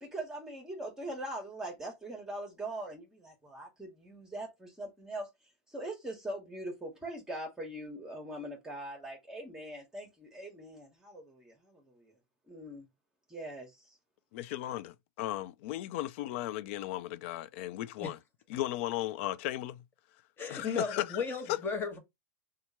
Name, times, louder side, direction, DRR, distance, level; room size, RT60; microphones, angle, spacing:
voice 1, 0.0-5.3 5.7-12.1 12.5-12.9 13.3-14.0, right 1 dB, 10° right, 1.2 m, -42 dB
voice 2, 14.3-18.2 18.5-19.8 20.5-21.2 21.5-21.6, left 14 dB, 60° left, 0.4 m, -36 dB
voice 3, 20.4-22.0, left 5 dB, 30° left, 1.2 m, -34 dB
2.8 x 2.4 x 4.2 m
hypercardioid pair, 100°, 7 cm